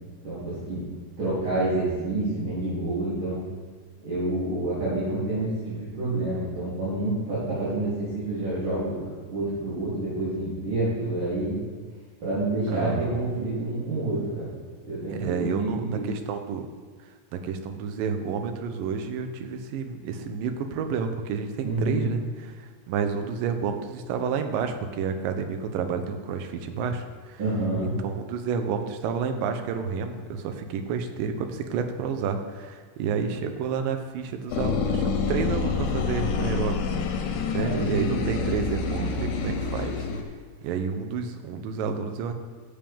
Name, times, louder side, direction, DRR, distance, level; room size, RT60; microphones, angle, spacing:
voice 1, 0.2-0.8 1.2-3.5 4.0-9.0 9.3-11.7 12.2-14.5 14.8-16.1 21.6-22.1 27.4-28.0 37.6-39.1, right 2 dB, 35° right, -12 dB, 3.6 m, -28 dB
voice 2, 12.7-13.2 15.1-16.7 17.3-27.4 28.0-37.0 37.5-40.1 40.6-42.3, right 6 dB, 80° right, 6 dB, 2.4 m, -30 dB
sound 1, 34.5-40.2, left 5 dB, 85° left, 2.6 m, -27 dB
13.0 x 7.2 x 3.5 m, 1.5 s
omnidirectional pair, 4.1 m